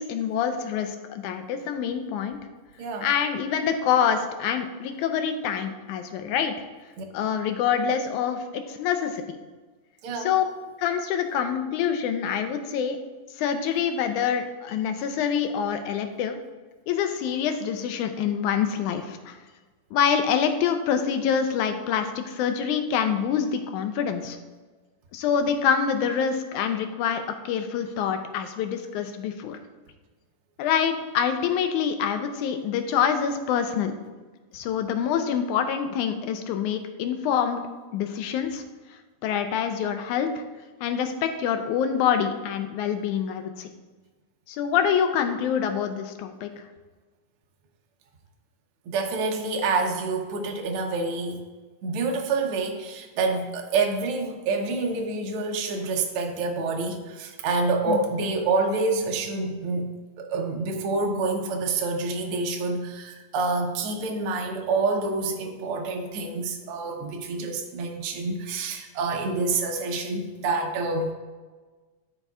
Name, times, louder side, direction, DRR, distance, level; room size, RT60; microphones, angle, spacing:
voice 1, 0.0-2.4 3.0-6.5 7.1-9.4 10.2-10.4 10.8-13.0 13.4-16.4 16.9-19.4 19.9-24.4 25.1-29.6 30.6-33.9 34.5-37.6 37.9-38.6 39.2-40.4 40.8-43.7 44.5-46.5 57.9-58.0, left 8 dB, 80° left, 7 dB, 2.0 m, -26 dB
voice 2, 2.8-3.1 7.0-7.1 10.0-10.4 48.9-51.4 51.8-59.9 60.2-71.1, right 3 dB, 70° right, 2 dB, 1.3 m, -27 dB
13.5 x 5.4 x 2.4 m, 1.3 s
omnidirectional pair, 3.6 m